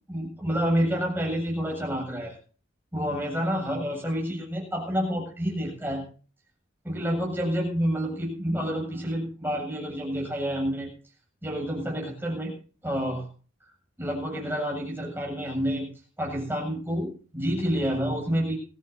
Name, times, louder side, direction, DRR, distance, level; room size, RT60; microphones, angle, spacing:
voice 1, 0.1-2.4 2.9-6.0 6.8-10.9 11.4-12.5 12.8-13.3 14.0-15.9 16.2-18.6, equal, 10° right, -2 dB, 7.5 m, -28 dB
21.0 x 15.5 x 2.8 m, 0.39 s
head